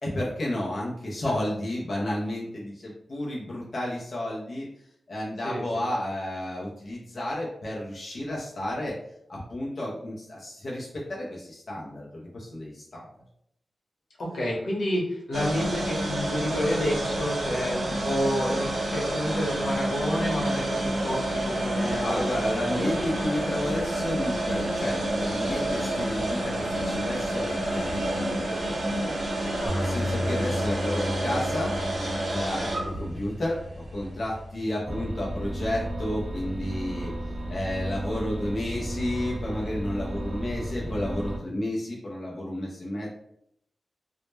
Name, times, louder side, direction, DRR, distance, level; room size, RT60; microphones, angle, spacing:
voice 1, 0.0-4.7 5.1-9.0 9.3-13.0 22.0-29.1 29.8-31.7 32.3-33.6 33.9-37.1 37.5-43.1, left 1 dB, 45° left, -5 dB, 0.4 m, -32 dB
voice 2, 5.4-5.8 14.2-22.2 22.6-23.3 29.6-30.3, equal, 80° left, -4 dB, 0.8 m, -30 dB
sound 1, 15.3-34.5, right 1 dB, 75° right, 0.8 m, -29 dB
Bass guitar, 29.7-35.9, left 1 dB, ahead, 0.7 m, -35 dB
sound 2, 34.9-41.4, right 1 dB, 35° right, 0.3 m, -33 dB
2.1 x 2.0 x 3.0 m, 0.73 s
wide cardioid pair, 170°, 0 cm